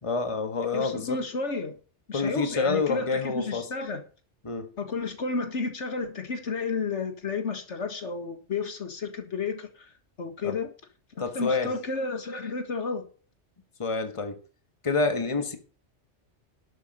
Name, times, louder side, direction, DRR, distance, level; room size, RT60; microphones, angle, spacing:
voice 1, 0.0-1.2 2.1-3.7 4.4-4.7 10.4-10.6 11.2-11.7 13.8-14.4 14.8-15.6, left 4 dB, 25° left, 1.5 m, -28 dB
voice 2, 0.7-1.8 2.1-4.0 4.8-9.9 10.2-10.7 11.2-13.0, left 4 dB, 75° left, 1.9 m, -32 dB
12.0 x 7.7 x 5.4 m
omnidirectional pair, 1.2 m